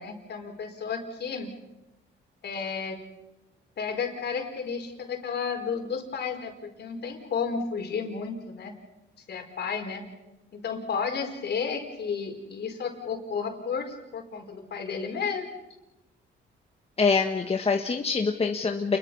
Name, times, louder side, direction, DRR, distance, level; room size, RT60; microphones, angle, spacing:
voice 1, 0.0-1.5 2.4-3.0 3.8-8.8 9.3-10.0 10.5-15.5, left 6 dB, 55° left, 4 dB, 4.7 m, -32 dB
voice 2, 17.0-19.0, left 4 dB, 30° left, 4 dB, 1.5 m, -25 dB
29.0 x 22.0 x 5.6 m, 0.99 s
cardioid pair, 90°, 20 cm